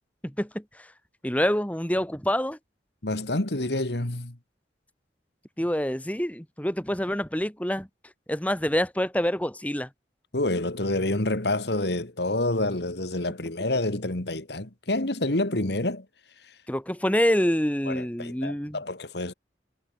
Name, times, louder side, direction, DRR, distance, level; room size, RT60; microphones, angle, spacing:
voice 1, 0.2-0.9 1.2-2.6 5.6-7.9 8.3-9.9 16.7-18.8, equal, 10° left, 2.6 m, -26 dB
voice 2, 3.0-4.4 10.3-16.1 17.9-19.3, left 2 dB, 70° left, 2.3 m, -28 dB
head